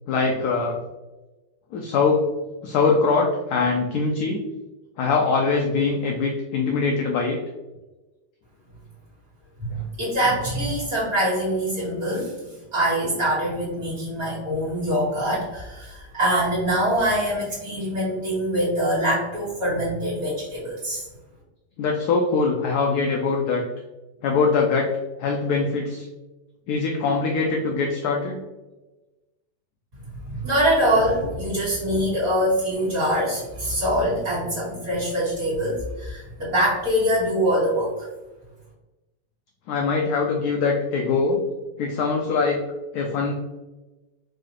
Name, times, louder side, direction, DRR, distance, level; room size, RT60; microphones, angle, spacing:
voice 1, 0.1-0.8 1.7-2.3 2.6-4.4 5.0-7.4 9.7-9.8 21.8-23.6 24.2-24.9 25.2-26.1 26.7-28.4 39.7-41.4 41.8-42.6 42.9-43.3, left 4 dB, 70° left, 1 dB, 1.0 m, -22 dB
voice 2, 9.7-12.4 12.7-21.0 30.3-37.9, equal, 55° right, -8 dB, 1.7 m, -24 dB
4.7 x 2.4 x 3.0 m, 1.1 s
omnidirectional pair, 1.9 m